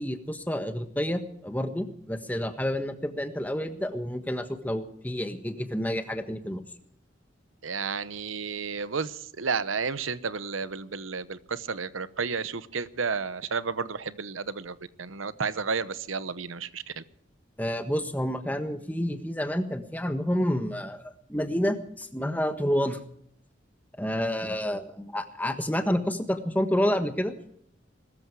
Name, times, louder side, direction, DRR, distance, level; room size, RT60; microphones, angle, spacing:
voice 1, 0.0-6.6 17.6-23.0 24.0-27.3, equal, 10° left, 7 dB, 1.4 m, -29 dB
voice 2, 7.6-17.0, right 5 dB, 90° right, 15 dB, 0.9 m, -32 dB
21.5 x 14.0 x 4.8 m, 0.68 s
head